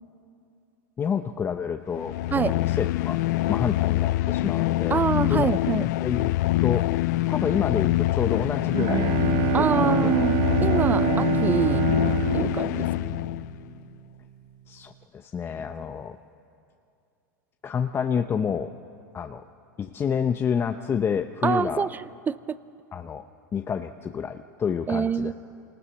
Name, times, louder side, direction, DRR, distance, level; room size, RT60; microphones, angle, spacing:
voice 1, 1.0-3.2 3.5-5.0 5.3-5.5 6.0-6.3 6.6-9.2 9.6-10.1 14.7-16.2 17.6-18.7 19.1-19.4 19.8-21.9 22.9-23.2 23.5-25.3, left 7 dB, 25° left, 7 dB, 0.7 m, -29 dB
sound 1, 1.9-13.6, left 16 dB, 65° left, 0.4 m, -25 dB
voice 2, 4.9-5.9 9.5-11.9 12.3-12.9 21.4-21.9 22.3-22.6 24.9-25.3, right 6 dB, 20° right, 18 dB, 0.6 m, -26 dB
Bowed string instrument, 8.4-13.9, right 13 dB, 50° right, 1.0 m, -26 dB
26.0 x 19.0 x 7.4 m, 2.5 s
hypercardioid pair, 110°, 10 cm